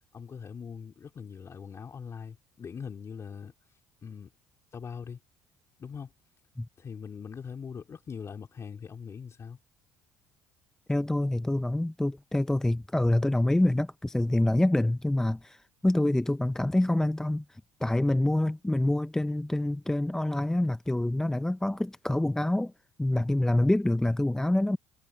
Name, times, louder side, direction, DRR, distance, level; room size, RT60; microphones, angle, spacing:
voice 1, 0.1-3.5 4.0-4.3 4.7-5.2 5.8-6.1 6.8-9.6, left 6 dB, 40° left, 3.6 m, -41 dB
voice 2, 10.9-22.7 23.0-24.8, left 1 dB, 5° left, 0.5 m, -26 dB
supercardioid pair, 85°, 8 cm